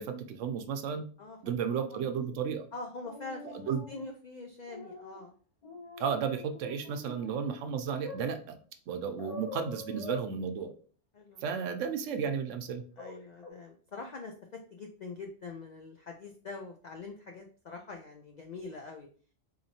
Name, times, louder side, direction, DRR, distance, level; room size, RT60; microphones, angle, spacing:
voice 1, 0.0-1.0 1.4-2.6 3.5-3.8 6.0-8.6 8.9-10.7 11.4-12.8, right 7 dB, 80° right, 7 dB, 0.9 m, -33 dB
voice 2, 2.7-5.3 11.1-11.7 13.0-19.1, left 3 dB, 70° left, 3 dB, 0.4 m, -44 dB
sound 1, 3.0-4.1 4.7-5.2 5.6-7.5 8.0-8.2 9.2-10.2 13.0-13.2 13.4-13.5, left 3 dB, 35° left, 0.9 m, -45 dB
4.2 x 2.8 x 2.7 m, 0.43 s
omnidirectional pair, 1.3 m